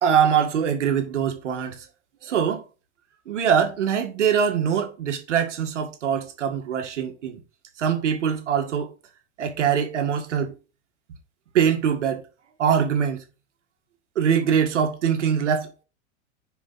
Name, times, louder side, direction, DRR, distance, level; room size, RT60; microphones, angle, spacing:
voice 1, 0.0-1.8 2.2-2.6 3.3-7.4 7.8-8.9 9.4-10.5 11.5-12.2 12.6-13.2 14.2-15.8, right 8 dB, 90° right, 2.0 m, -23 dB
5.1 x 4.9 x 5.7 m
hypercardioid pair, 120°, 35 cm